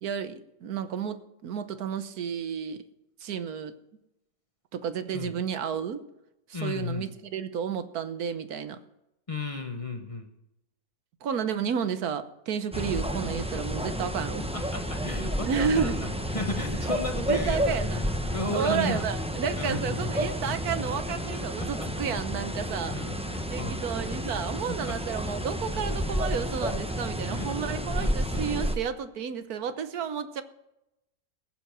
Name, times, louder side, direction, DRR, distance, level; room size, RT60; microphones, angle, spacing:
voice 1, 0.0-2.8 3.2-3.8 4.7-6.0 6.5-8.8 11.2-14.4 15.5-16.0 17.2-18.0 18.5-23.0 23.5-30.4, right 7 dB, 80° right, 11 dB, 1.4 m, -31 dB
voice 2, 6.5-7.1 9.3-10.3 12.7-12.9 14.5-17.6 17.9-19.0 19.6-19.8 21.6-21.9 22.8-23.8 24.7-25.0 25.7-25.8 27.3-27.5 28.0-28.4, left 2 dB, 25° left, 5 dB, 1.1 m, -35 dB
sound 1, 12.7-28.8, equal, 5° right, 0.7 m, -31 dB
20.0 x 7.4 x 6.0 m, 0.88 s
omnidirectional pair, 1.6 m